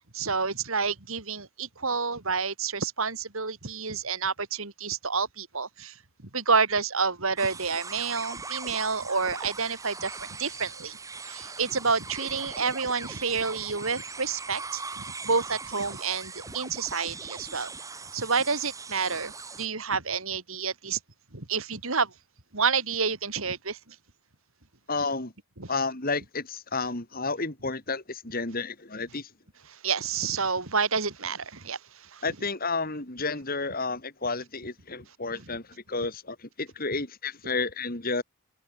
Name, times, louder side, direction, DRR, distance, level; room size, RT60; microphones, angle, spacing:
voice 1, 0.1-5.9 6.3-11.0 11.2-17.7 18.1-19.3 19.6-21.0 21.3-22.1 22.5-23.8 25.6-25.7 29.8-31.8 32.1-32.2, right 5 dB, 70° right, 3.1 m, -29 dB
sound 1, 7.4-19.7, right 4 dB, 15° right, 1.3 m, -40 dB
voice 2, 24.9-25.3 25.7-29.3 32.2-35.6 35.9-38.2, left 3 dB, 40° left, 3.1 m, -31 dB
head